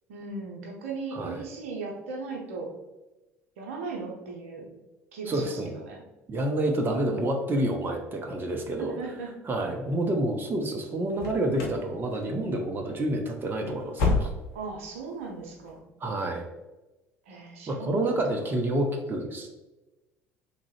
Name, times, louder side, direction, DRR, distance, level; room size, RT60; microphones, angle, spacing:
voice 1, 0.1-2.7 3.6-4.7 5.1-6.0 8.8-9.4 9.6-9.7 14.5-15.8 17.3-18.0, right 4 dB, 75° right, 0 dB, 0.8 m, -37 dB
voice 2, 1.1-1.4 5.3-5.8 6.3-8.9 9.5-14.3 16.0-16.4 17.7-19.5, right 1 dB, 30° right, 3 dB, 0.6 m, -28 dB
sound 1, 11.1-11.9 12.1-12.6 12.9-13.0 13.5-14.7 15.0-15.1 15.7-15.8, left 3 dB, 65° left, 0.8 m, -29 dB
3.6 x 2.9 x 3.2 m, 1.1 s
figure-of-eight pair, 60°, 7 cm